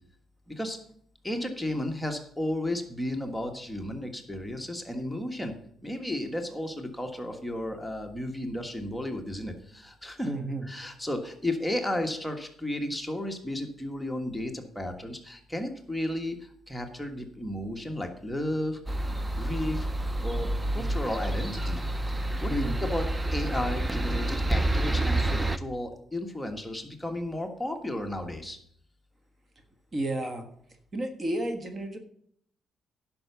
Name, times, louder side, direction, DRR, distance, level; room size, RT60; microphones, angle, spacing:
voice 1, 0.5-0.8 1.2-5.6 5.8-10.3 10.6-18.8 19.3-19.9 20.2-21.8 22.4-28.6, left 1 dB, 5° left, 3 dB, 1.5 m, -33 dB
voice 2, 10.2-10.7 20.7-21.0 22.5-22.8 29.9-30.5 30.9-32.0, right 1 dB, 30° right, 6 dB, 1.4 m, -32 dB
sound 1, 18.9-25.6, right 1 dB, 15° right, 0.6 m, -28 dB
10.5 x 5.9 x 6.9 m, 0.65 s
cardioid pair, 90°, 0 cm